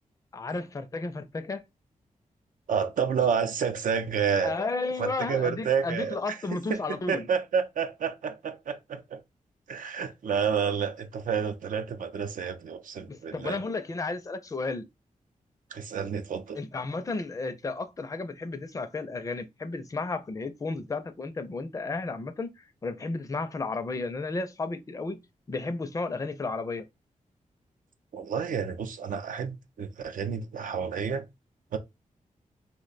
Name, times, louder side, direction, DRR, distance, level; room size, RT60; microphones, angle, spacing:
voice 1, 0.3-1.6 4.4-7.3 13.1-14.9 16.6-22.5 22.8-25.2 25.5-26.8, left 3 dB, 25° left, 0.4 m, -33 dB
voice 2, 2.7-4.6 5.0-6.4 6.7-6.8 7.1-9.2 9.7-13.6 15.7-16.6 28.1-31.3 31.7-31.8, right 6 dB, 80° right, 0.5 m, -29 dB
2.8 x 2.2 x 3.9 m
wide cardioid pair, 85°, 14 cm